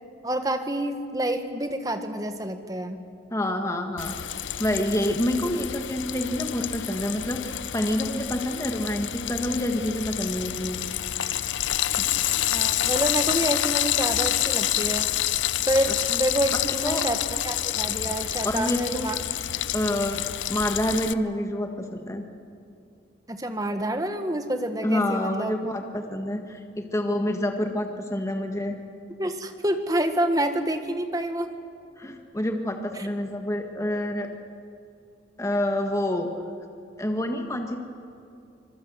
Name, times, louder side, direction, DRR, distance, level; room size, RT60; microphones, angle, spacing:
voice 1, 0.2-3.0 12.5-15.1 15.7-17.2 17.4-19.1 19.9-20.0 23.3-25.5 29.2-31.6 32.9-33.1, right 1 dB, 20° right, 7 dB, 1.5 m, -28 dB
voice 2, 3.3-4.2 4.6-10.8 12.0-12.1 16.7-17.0 18.4-19.1 19.7-20.2 20.5-22.2 24.8-28.8 32.0-34.3 35.4-36.3 37.0-37.8, left 1 dB, 15° left, 4 dB, 1.6 m, -27 dB
Frying (food), 4.0-21.1, left 12 dB, 90° left, 0.6 m, -28 dB
26.0 x 20.5 x 8.1 m, 2.6 s
head